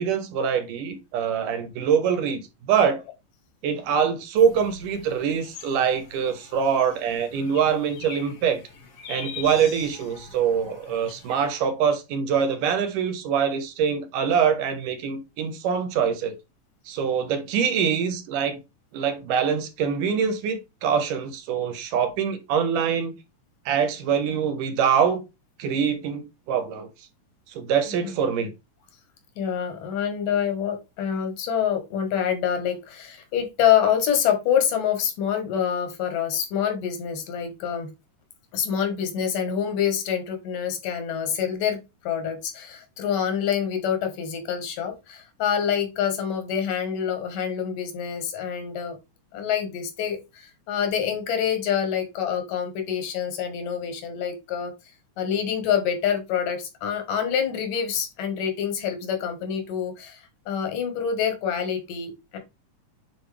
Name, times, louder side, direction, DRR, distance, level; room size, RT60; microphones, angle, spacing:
voice 1, 0.0-3.0 3.6-8.6 9.1-16.3 16.9-18.6 18.9-23.1 23.7-25.2 25.6-26.9 27.5-28.5, right 7 dB, 80° right, 2.8 m, -24 dB
sound 1, 4.4-11.5, left 6 dB, 55° left, 2.1 m, -43 dB
voice 2, 29.4-37.9 38.5-49.0 49.3-54.7 55.2-62.4, left 8 dB, 85° left, 3.3 m, -26 dB
9.2 x 4.1 x 3.4 m
omnidirectional pair, 3.7 m